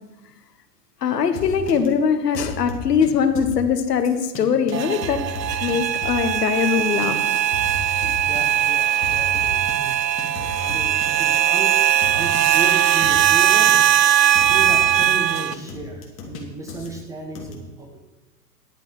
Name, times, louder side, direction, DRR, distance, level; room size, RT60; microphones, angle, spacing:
voice 1, 1.0-5.2 5.6-7.2, left 6 dB, 70° left, 9 dB, 1.4 m, -21 dB
sound 1, 1.3-1.9 2.3-3.1 3.3-3.6 4.0-4.4 4.7-4.8 5.0-6.4 6.7-13.4 13.7-13.9 14.2-16.4 16.7-16.9 17.3-17.5, left 3 dB, 25° left, 2.5 m, -35 dB
sound 2, 4.7-15.5, right 11 dB, 90° right, 0.6 m, -19 dB
voice 2, 8.0-10.0 10.6-11.8 12.1-13.8 14.5-18.1, right 2 dB, 5° right, 1 dB, 0.4 m, -34 dB
11.0 x 8.4 x 5.1 m, 1.1 s
hypercardioid pair, 115°, 49 cm